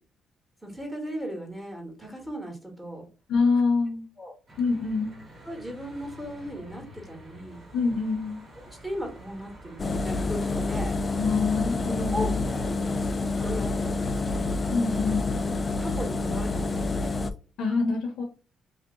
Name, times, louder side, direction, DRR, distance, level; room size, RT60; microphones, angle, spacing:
voice 1, 0.6-3.1 4.2-4.3 5.4-7.6 8.8-11.0 12.1-14.5 15.7-17.1, equal, 10° right, 1 dB, 1.3 m, -37 dB
voice 2, 3.3-4.1 4.6-5.2 7.7-8.4 11.2-12.4 14.7-15.3 17.6-18.2, left 4 dB, 75° left, 2 dB, 0.8 m, -25 dB
Church bell / Traffic noise roadway noise, 4.5-14.4, equal, 40° right, 1.3 m, -48 dB
Engine, 9.8-17.3, left 3 dB, 30° left, 0.3 m, -28 dB
2.8 x 2.2 x 3.6 m, 0.35 s
cardioid pair, 100°, 0 cm